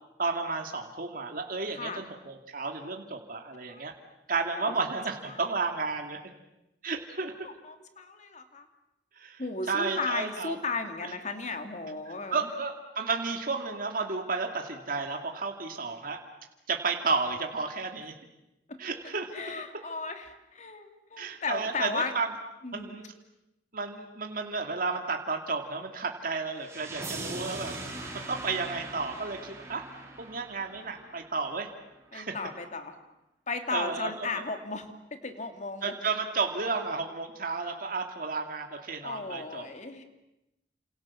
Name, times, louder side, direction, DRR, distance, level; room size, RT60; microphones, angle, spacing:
voice 1, 0.2-3.9 4.3-6.2 6.8-7.4 9.2-9.4 9.7-10.6 11.0-11.1 12.3-16.2 16.7-18.1 18.8-19.3 21.2-22.3 22.7-23.0 23.7-27.7 28.3-29.8 30.2-31.7 32.1-32.4 33.7-34.1 35.8-39.6, right 4 dB, 55° right, 3 dB, 2.5 m, -32 dB
voice 2, 1.7-2.1 3.6-3.9 4.7-4.8 5.3-5.4 7.4-8.6 9.4-12.5 18.7-18.8 19.3-22.1 22.6-23.0 32.1-33.0 33.5-36.0 39.0-40.0, left 3 dB, 45° left, 6 dB, 2.8 m, -35 dB
sound 1, 26.6-31.6, right 2 dB, 15° right, 5.0 m, -41 dB
30.0 x 27.5 x 7.3 m, 0.91 s
head